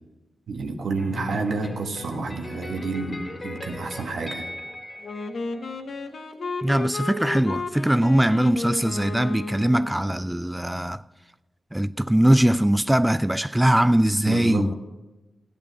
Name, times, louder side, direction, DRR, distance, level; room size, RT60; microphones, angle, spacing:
voice 1, 0.5-4.4 14.2-14.7, right 3 dB, 85° right, 1.3 m, -29 dB
sound 1, 1.0-6.1, left 1 dB, 35° left, 2.1 m, -39 dB
Wind instrument woodwind instrument, 5.0-10.2, left 3 dB, 70° left, 1.1 m, -33 dB
voice 2, 6.6-11.0 11.7-14.7, right 1 dB, 10° right, 0.3 m, -21 dB
14.0 x 8.5 x 6.0 m
cardioid pair, 50°, 0 cm